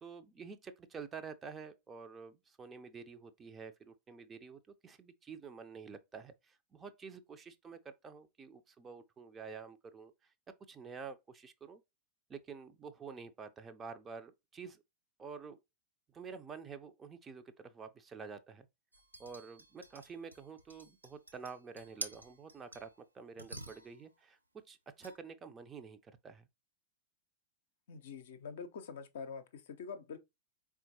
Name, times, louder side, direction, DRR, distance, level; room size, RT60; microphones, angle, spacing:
voice 1, 0.0-10.1 10.7-11.8 12.3-14.8 15.2-15.6 16.1-18.7 19.2-24.4 24.7-26.5, right 5 dB, 20° right, 0.5 m, -49 dB
sound 1, 18.9-23.0 23.4-24.1 25.0-25.2, right 2 dB, 85° right, 0.6 m, -49 dB
voice 2, 27.9-30.2, left 5 dB, 60° left, 0.6 m, -45 dB
4.3 x 3.6 x 2.8 m
figure-of-eight pair, 90°, 0 cm